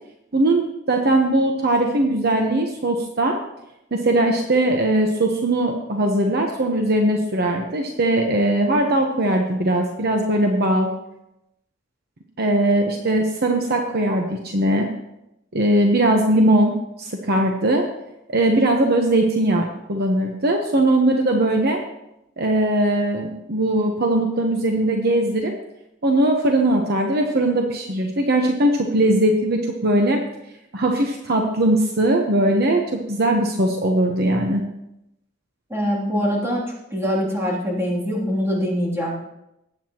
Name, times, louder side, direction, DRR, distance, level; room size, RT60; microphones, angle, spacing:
voice 1, 0.3-3.4 3.9-10.9 12.4-14.9 15.5-16.7 17.0-17.8 18.3-21.8 22.4-25.6 26.0-30.2 30.7-34.6, right 1 dB, 55° right, 2 dB, 1.0 m, -20 dB
voice 2, 35.7-36.6 36.9-39.2, equal, 15° right, -5 dB, 3.0 m, -23 dB
19.0 x 8.3 x 3.0 m, 0.86 s
head